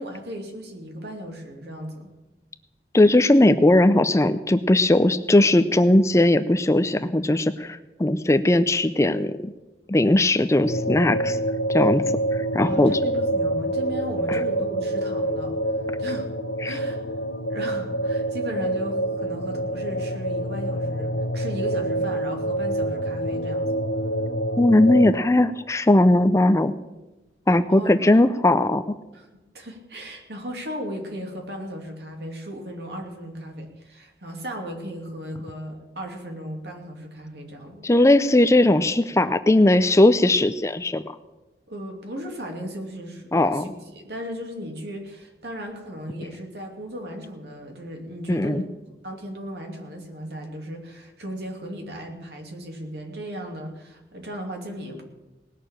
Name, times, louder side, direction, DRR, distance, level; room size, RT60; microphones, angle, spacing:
voice 1, 0.0-2.1 12.6-15.6 16.0-16.3 16.6-17.0 17.5-23.7 27.7-28.1 29.1-29.3 29.5-37.9 41.7-48.7 49.0-55.0, equal, 70° right, 2 dB, 2.8 m, -36 dB
voice 2, 2.9-9.5 9.9-11.4 11.7-12.0 12.3-12.9 14.3-14.4 16.6-16.8 24.6-26.7 27.5-28.8 37.8-41.0 43.3-43.6 48.3-48.6, left 1 dB, 15° left, 12 dB, 0.5 m, -18 dB
sound 1, 10.6-25.2, right 1 dB, 75° left, 1.0 m, -26 dB
19.0 x 6.7 x 8.9 m, 1.1 s
head